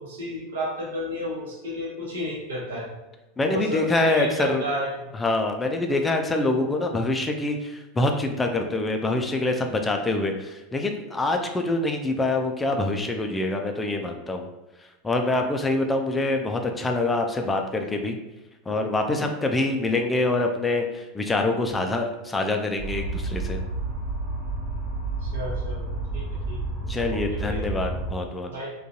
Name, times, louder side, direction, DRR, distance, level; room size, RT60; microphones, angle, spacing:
voice 1, 0.0-2.9 3.5-5.1 25.2-27.6 28.1-28.2 28.5-28.7, equal, 65° right, -3 dB, 0.9 m, -32 dB
voice 2, 3.4-4.6 5.2-14.5 15.0-18.2 18.7-23.6 26.9-28.5, left 2 dB, 15° left, 3 dB, 0.4 m, -25 dB
sound 1, 22.8-28.1, right 2 dB, 15° right, 1.0 m, -30 dB
3.7 x 2.3 x 2.6 m, 1.1 s
figure-of-eight pair, 80°, 0 cm